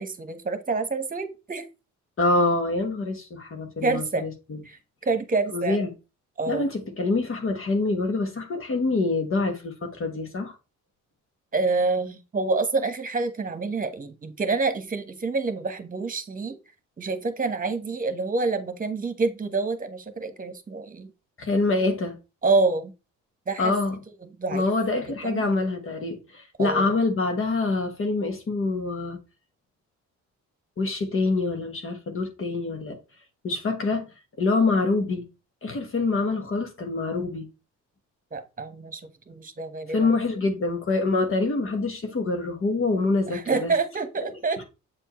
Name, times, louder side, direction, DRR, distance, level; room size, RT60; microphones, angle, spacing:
voice 1, 0.0-1.6 3.8-4.2 4.6-4.8 5.0-5.8 6.4-6.7 11.5-16.5 17.0-21.1 22.4-22.9 23.5-23.7 24.4-24.7 25.2-25.4 26.6-26.9 38.3-39.0 39.3-40.1 43.3-44.6, right 3 dB, 30° right, 1.2 m, -27 dB
voice 2, 2.2-4.6 5.5-5.9 6.5-10.5 21.4-22.1 23.6-24.0 24.5-29.2 30.8-33.0 33.4-34.1 34.4-35.2 35.6-37.5 39.9-43.7 44.2-44.3, left 3 dB, 45° left, 1.3 m, -25 dB
7.7 x 4.4 x 3.1 m
cardioid pair, 90°, 30 cm